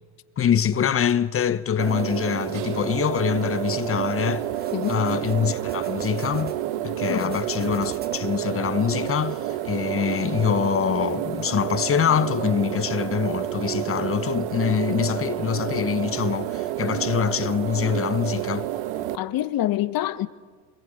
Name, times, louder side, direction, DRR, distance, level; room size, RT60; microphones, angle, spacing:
voice 1, 0.4-4.5 4.9-6.6 6.8-18.7, left 8 dB, 25° left, 1.0 m, -24 dB
sound 1, 1.8-19.2, right 13 dB, 60° right, 1.8 m, -29 dB
sound 2, 4.5-6.6 7.0-8.5, right 4 dB, 20° right, 2.0 m, -45 dB
voice 2, 4.7-5.0 7.1-7.4 19.1-20.3, left 13 dB, 45° left, 1.4 m, -26 dB
27.5 x 21.5 x 9.1 m
hypercardioid pair, 85°, 50 cm